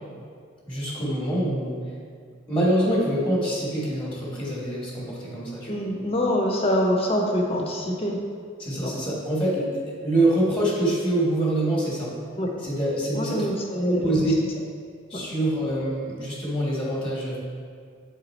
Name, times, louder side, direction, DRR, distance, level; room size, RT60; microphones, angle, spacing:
voice 1, 0.7-1.9 2.5-5.7 8.6-12.1 12.6-13.5 13.7-14.3 15.1-17.4, right 1 dB, 5° left, -5 dB, 1.2 m, -25 dB
voice 2, 5.7-8.2 8.8-8.9 12.4-12.5 13.1-14.3 15.1-15.2, left 1 dB, 30° left, 0 dB, 0.8 m, -25 dB
8.1 x 3.7 x 4.2 m, 2.2 s
head